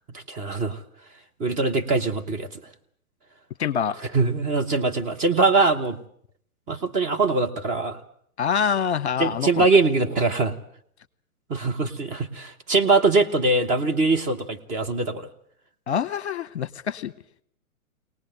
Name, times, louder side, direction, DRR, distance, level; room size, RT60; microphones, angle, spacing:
voice 1, 0.1-0.8 1.4-2.6 4.1-6.0 6.7-8.0 9.2-10.5 11.5-15.3, right 3 dB, 15° right, 4 dB, 1.2 m, -22 dB
voice 2, 3.6-4.0 8.4-9.7 15.9-17.1, left 7 dB, 50° left, 15 dB, 0.9 m, -25 dB
23.5 x 19.0 x 7.8 m, 0.62 s
figure-of-eight pair, 115°, 44 cm